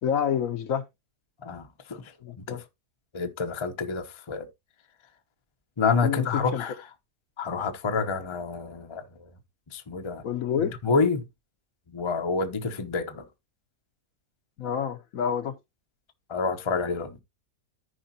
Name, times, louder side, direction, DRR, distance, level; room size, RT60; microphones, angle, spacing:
voice 1, 0.0-0.9 2.2-2.6 6.0-6.6 10.2-10.7 14.6-15.5, left 8 dB, 65° left, 1.1 m, -28 dB
voice 2, 1.4-2.1 2.5-2.6 3.1-4.5 5.8-6.7 7.4-9.3 9.7-10.2 10.8-11.3 11.9-13.2 16.3-17.2, left 4 dB, 25° left, 0.6 m, -28 dB
14.0 x 5.0 x 2.8 m
omnidirectional pair, 1.7 m